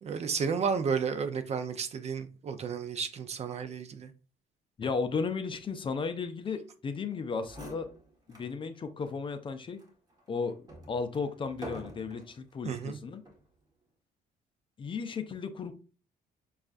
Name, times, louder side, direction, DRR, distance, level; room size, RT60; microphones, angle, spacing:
voice 1, 0.0-4.1 12.7-13.0, right 6 dB, 40° right, 10 dB, 0.5 m, -32 dB
voice 2, 4.8-7.9 8.3-9.8 10.3-10.6 10.9-13.2 14.8-15.7, left 5 dB, 30° left, 8 dB, 0.5 m, -34 dB
sound 1, 7.1-7.2 7.4-8.5 9.0-9.1 9.8-12.4 13.1-13.5, equal, 20° right, 1.4 m, -46 dB
6.3 x 2.4 x 2.4 m, 0.36 s
cardioid pair, 110°, 17 cm